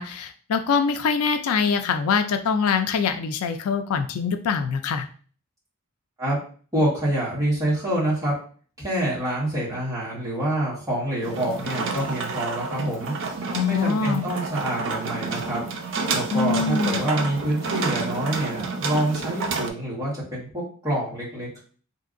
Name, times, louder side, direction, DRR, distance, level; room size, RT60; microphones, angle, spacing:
voice 1, 0.0-5.1 13.5-14.3 16.3-17.0, left 5 dB, 80° left, 8 dB, 0.4 m, -24 dB
voice 2, 6.7-8.3 8.8-13.1 13.6-15.6 16.1-21.6, right 1 dB, 15° right, -7 dB, 1.4 m, -26 dB
sound 1, 11.2-19.7, right 4 dB, 60° right, 0.5 m, -29 dB
3.2 x 2.7 x 2.5 m, 0.42 s
head